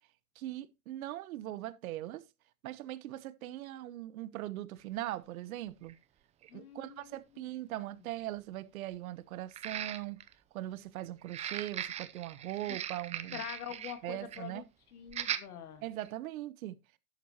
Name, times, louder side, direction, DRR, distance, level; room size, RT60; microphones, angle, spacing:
voice 1, 0.4-2.2 2.6-6.0 6.5-10.2 10.5-13.4 14.0-14.6 15.8-16.8, right 14 dB, 65° right, 1.1 m, -40 dB
sound 1, 4.8-4.9 5.9-6.0 6.4-6.5 9.5-10.3 11.2-14.0 14.3-14.5 15.1-15.5 16.0-16.1, right 10 dB, 15° right, 0.5 m, -39 dB
voice 2, 6.5-7.5 13.3-14.6 14.9-15.8, left 10 dB, 70° left, 2.2 m, -45 dB
11.5 x 8.3 x 2.9 m
hypercardioid pair, 120°, 46 cm